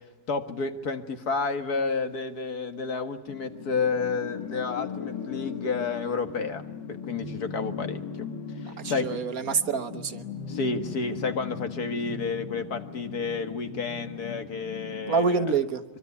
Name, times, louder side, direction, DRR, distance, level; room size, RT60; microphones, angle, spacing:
voice 1, 0.3-6.6 6.9-8.3 8.6-9.2 10.5-15.5, left 4 dB, 60° left, 7 dB, 2.1 m, -30 dB
sound 1, 3.3-15.3, left 6 dB, 85° left, 2.1 m, -38 dB
voice 2, 8.6-10.2 15.1-15.8, right 5 dB, 60° right, 10 dB, 1.4 m, -27 dB
24.0 x 24.0 x 9.6 m, 1.1 s
omnidirectional pair, 1.8 m